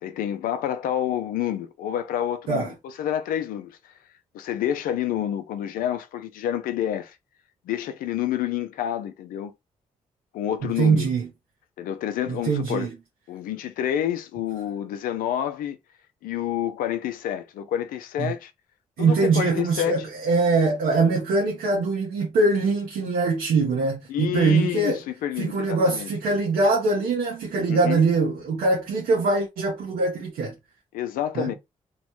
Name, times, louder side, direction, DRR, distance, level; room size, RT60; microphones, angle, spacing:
voice 1, 0.0-3.8 4.3-7.2 7.7-9.5 10.3-11.1 11.8-12.9 13.3-15.8 16.2-18.5 19.0-20.0 24.1-26.1 27.7-28.0 30.9-31.5, left 10 dB, 85° left, 0.4 m, -28 dB
voice 2, 10.6-11.3 12.3-12.9 18.2-18.3 19.0-25.0 25.4-30.5 31.3-31.5, right 3 dB, 85° right, 0.9 m, -23 dB
3.0 x 2.1 x 2.9 m
supercardioid pair, 50°, 14 cm